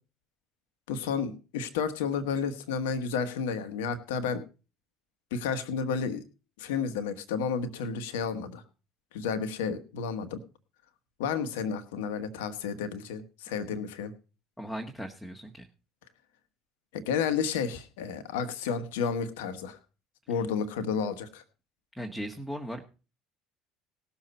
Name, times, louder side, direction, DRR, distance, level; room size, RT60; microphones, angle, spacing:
voice 1, 0.9-4.4 5.3-6.2 6.6-8.6 9.1-10.4 11.2-14.1 16.9-19.8 20.3-21.4, left 6 dB, 70° left, 10 dB, 1.4 m, -31 dB
voice 2, 14.6-15.7 22.0-22.8, equal, 5° left, 1 dB, 1.7 m, -37 dB
18.5 x 7.2 x 4.2 m, 0.33 s
figure-of-eight pair, 60°, 0 cm